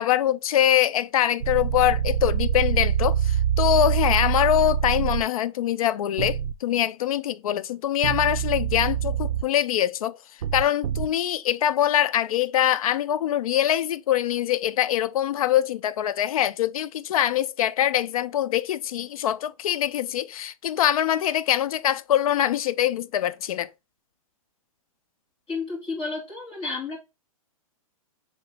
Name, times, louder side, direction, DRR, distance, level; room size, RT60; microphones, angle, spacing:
voice 1, 0.0-10.2 10.5-23.7, left 11 dB, 75° left, 0.4 m, -23 dB
sound 1, 1.4-5.2 6.2-6.5 8.0-9.4 10.4-11.1, right 9 dB, 75° right, 0.4 m, -25 dB
voice 2, 25.5-27.0, left 3 dB, 25° left, 2.1 m, -31 dB
3.1 x 2.9 x 4.6 m
hypercardioid pair, 155°, 18 cm